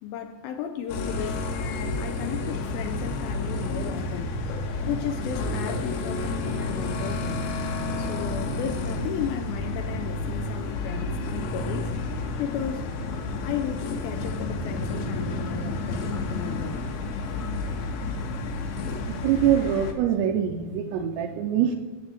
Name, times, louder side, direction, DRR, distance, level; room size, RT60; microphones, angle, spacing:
voice 1, 0.0-4.3 4.8-7.4 8.0-11.9 12.4-12.9 13.4-16.9, left 9 dB, 90° left, 2.1 m, -34 dB
sound 1, 0.9-19.9, left 2 dB, 70° left, 2.7 m, -30 dB
voice 2, 19.1-21.8, right 9 dB, 85° right, 2.7 m, -24 dB
14.5 x 6.7 x 4.3 m
omnidirectional pair, 5.1 m